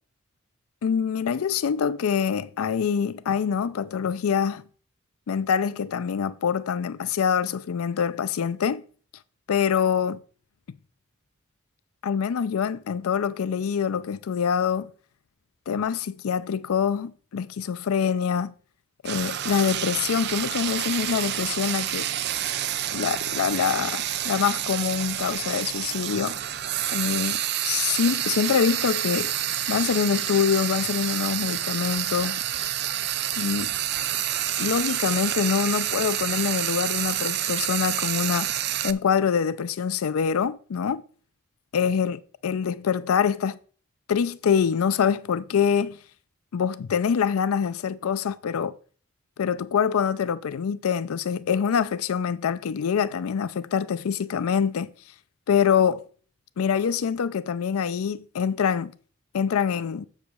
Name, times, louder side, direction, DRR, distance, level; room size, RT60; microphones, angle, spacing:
voice 1, 0.8-4.6 5.3-8.8 9.5-10.2 12.0-14.9 15.7-18.5 19.0-22.1 22.9-26.4 26.9-29.4 29.7-32.4 33.4-33.8 34.6-38.6 38.8-41.0 41.7-43.6 44.1-46.0 46.5-48.8 49.4-54.9 55.5-56.0 56.6-58.9 59.3-60.1, left 7 dB, 90° left, 0.4 m, -25 dB
Frying (food), 19.0-38.9, right 11 dB, 50° right, 0.5 m, -28 dB
7.3 x 4.9 x 6.8 m
head